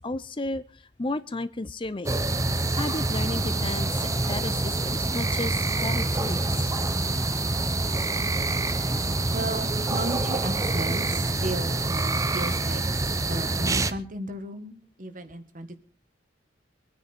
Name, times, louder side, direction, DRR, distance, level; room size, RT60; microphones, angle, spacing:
voice 1, 0.0-2.2 2.7-6.7, left 2 dB, 25° left, 14 dB, 0.6 m, -33 dB
sound 1, 2.1-13.9, right 2 dB, 15° right, 0.7 m, -26 dB
voice 2, 9.3-15.8, right 1 dB, 45° right, 9 dB, 1.5 m, -35 dB
23.5 x 9.8 x 4.4 m, 0.43 s
head